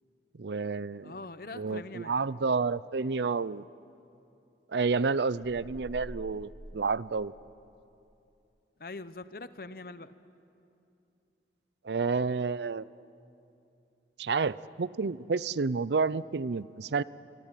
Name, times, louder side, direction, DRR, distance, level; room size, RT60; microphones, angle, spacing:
voice 1, 0.3-1.1 1.5-3.7 4.7-7.3 11.8-12.8 14.2-17.0, right 4 dB, 75° right, 19 dB, 0.5 m, -30 dB
voice 2, 1.0-2.1 8.8-10.1, left 3 dB, 55° left, 13 dB, 0.9 m, -43 dB
sound 1, 5.4-7.8, equal, 15° right, 1.3 m, -47 dB
27.0 x 23.5 x 9.1 m, 2.7 s
head